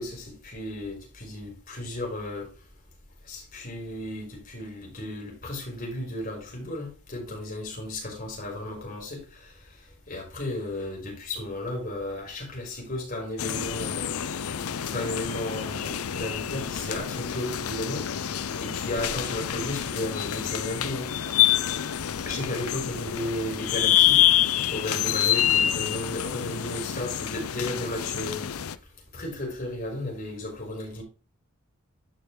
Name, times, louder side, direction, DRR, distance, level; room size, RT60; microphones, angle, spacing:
voice 1, 0.0-2.5 3.3-9.5 10.1-14.2 14.8-18.1 18.6-21.1 22.3-24.2 24.7-28.5 29.1-31.0, left 1 dB, 40° left, 4.3 m, -34 dB
sound 1, 13.4-28.8, left 11 dB, 85° left, 0.6 m, -27 dB
12.0 x 4.7 x 3.4 m
head